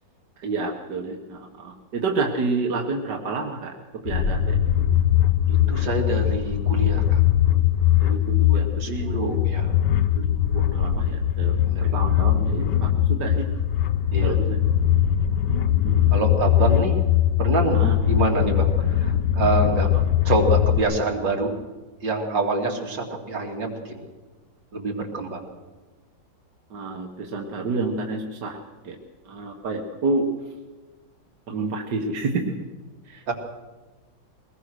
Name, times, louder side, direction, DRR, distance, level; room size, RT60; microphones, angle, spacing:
voice 1, 0.4-4.9 8.0-9.3 10.2-11.5 11.8-13.5 14.2-14.6 15.8-16.2 17.7-18.0 26.7-28.6 28.8-29.0 29.3-30.3 31.5-32.5 33.1-33.3, right 3 dB, 65° right, 2 dB, 2.1 m, -29 dB
sound 1, 4.1-20.8, left 11 dB, 75° left, 1.5 m, -21 dB
voice 2, 5.5-7.2 8.5-9.7 11.6-12.0 14.1-14.4 16.1-17.0 17.4-19.9 20.2-21.5 22.0-24.0 24.7-25.5 33.3-33.4, right 2 dB, 85° right, 2 dB, 3.4 m, -26 dB
23.0 x 19.5 x 6.4 m, 1.3 s
omnidirectional pair, 2.0 m